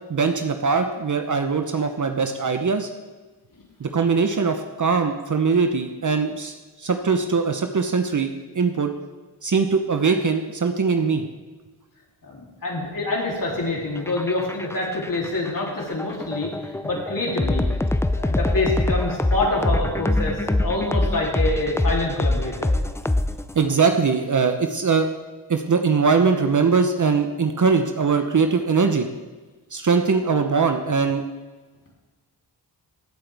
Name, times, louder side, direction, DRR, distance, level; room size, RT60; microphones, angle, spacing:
voice 1, 0.1-2.9 3.8-8.9 9.4-11.3 23.6-25.1 25.5-29.1 29.7-31.2, right 5 dB, 45° right, 6 dB, 0.9 m, -21 dB
voice 2, 12.2-17.7 18.2-22.7, left 2 dB, 50° left, -3 dB, 3.4 m, -26 dB
sound 1, 14.0-23.7, left 1 dB, 5° left, 0.5 m, -24 dB
15.5 x 7.6 x 3.5 m, 1.2 s
cardioid pair, 55°, 41 cm